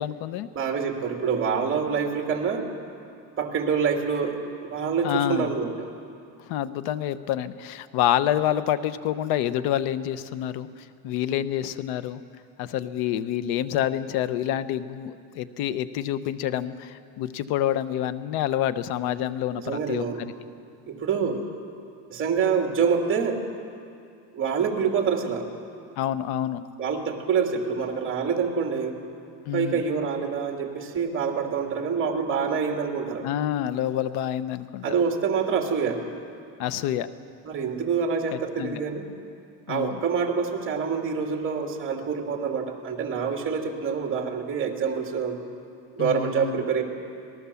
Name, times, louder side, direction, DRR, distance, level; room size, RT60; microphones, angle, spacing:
voice 1, 0.0-0.5 5.0-5.5 6.5-10.7 11.0-12.2 12.6-20.0 26.0-26.6 29.5-29.8 33.2-34.9 36.6-37.1 38.6-38.8 39.7-40.0 46.0-46.6, left 11 dB, 85° left, 14 dB, 1.0 m, -27 dB
voice 2, 0.5-2.7 3.4-5.9 19.6-20.2 20.9-21.4 22.1-23.4 24.3-25.5 26.8-29.0 29.5-33.3 34.8-36.0 37.4-39.1 39.7-45.4 46.0-46.8, right 6 dB, 35° right, 2 dB, 2.8 m, -26 dB
26.0 x 19.0 x 7.1 m, 2.4 s
cardioid pair, 145°, 37 cm